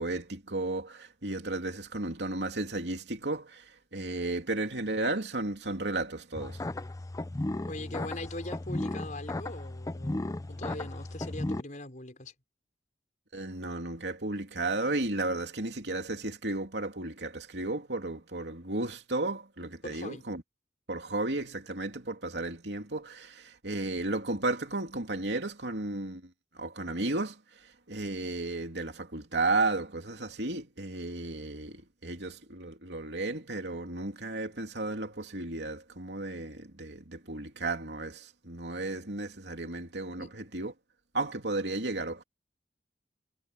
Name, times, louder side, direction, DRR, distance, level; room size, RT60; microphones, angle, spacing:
voice 1, 0.0-6.6 13.3-20.4 20.9-40.7 41.1-42.2, right 2 dB, 80° right, 2.9 m, -34 dB
sound 1, 6.4-11.6, left 1 dB, 20° left, 0.5 m, -35 dB
voice 2, 7.7-12.3 19.8-20.2 39.6-39.7 40.2-40.3, left 1 dB, 45° left, 5.5 m, -41 dB
head